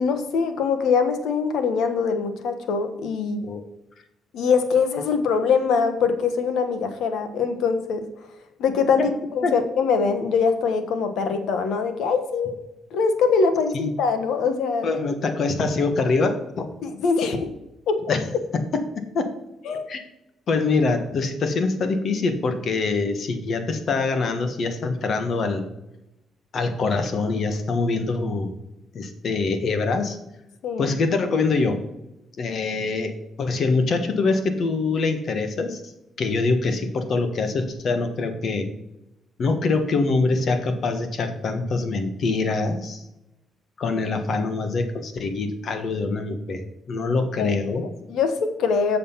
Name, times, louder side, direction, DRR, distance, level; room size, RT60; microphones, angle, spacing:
voice 1, 0.0-3.4 4.3-8.0 8.6-12.6 12.9-14.9 16.8-17.5 17.9-18.2 19.6-19.9 30.6-30.9 47.4-49.0, left 5 dB, 80° left, 8 dB, 1.3 m, -23 dB
voice 2, 14.8-16.7 18.1-18.2 18.7-19.3 19.9-20.1 20.5-25.7 26.5-28.6 28.9-30.2 30.8-31.8 32.4-33.1 33.4-35.8 36.2-38.7 39.4-43.0 43.8-47.8, left 3 dB, 55° left, 8 dB, 1.4 m, -24 dB
7.3 x 6.7 x 5.7 m, 0.90 s
cardioid pair, 90°, 0 cm